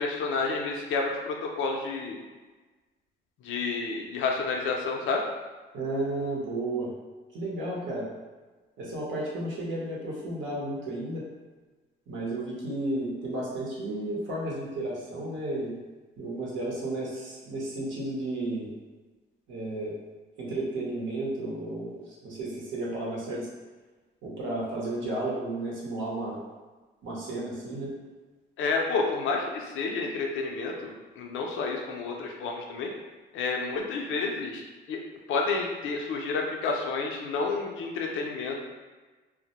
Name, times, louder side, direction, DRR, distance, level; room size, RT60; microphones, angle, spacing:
voice 1, 0.0-2.2 3.4-5.2 28.6-32.9 33.3-34.6 34.9-35.0 35.3-38.6, left 4 dB, 80° left, 1 dB, 0.5 m, -30 dB
voice 2, 5.7-6.9 7.3-8.1 8.8-11.2 12.1-15.8 16.2-18.7 19.5-19.9 20.4-23.5 24.2-26.4 27.0-27.9, right 2 dB, 75° right, -5 dB, 0.8 m, -33 dB
2.1 x 2.0 x 2.8 m, 1.3 s
cardioid pair, 90°, 20 cm